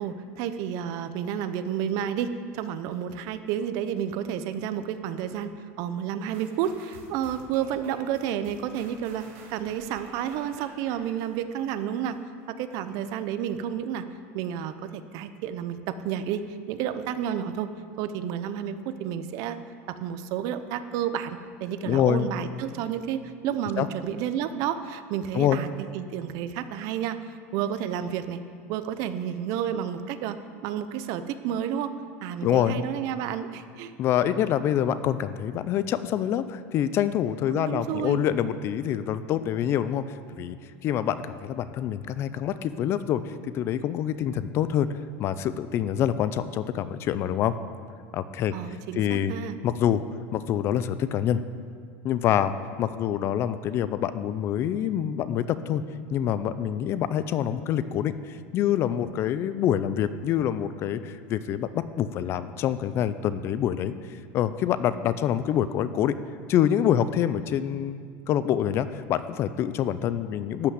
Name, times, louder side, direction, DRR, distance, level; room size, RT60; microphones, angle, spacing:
voice 1, 0.0-5.5 5.8-9.2 9.5-12.2 12.5-14.1 14.3-17.7 18.0-19.6 19.9-28.4 28.7-30.4 30.6-31.9 32.2-33.9 37.5-38.2 48.5-49.6, right 9 dB, 55° right, 11 dB, 0.7 m, -31 dB
sound 1, 6.3-12.2 12.7-12.8, right 3 dB, 85° right, 3.7 m, -50 dB
voice 2, 21.8-22.3 23.8-23.9 25.3-25.6 32.4-32.8 34.0-40.6 40.8-44.9 45.2-47.5 48.1-48.5 49.0-49.3 49.6-50.0 50.3-51.4 52.0-52.5 52.8-55.8 56.1-63.9 64.3-66.2 66.5-70.7, left 10 dB, 35° left, 13 dB, 0.4 m, -26 dB
13.0 x 5.9 x 8.0 m, 2.2 s
supercardioid pair, 155°, 7 cm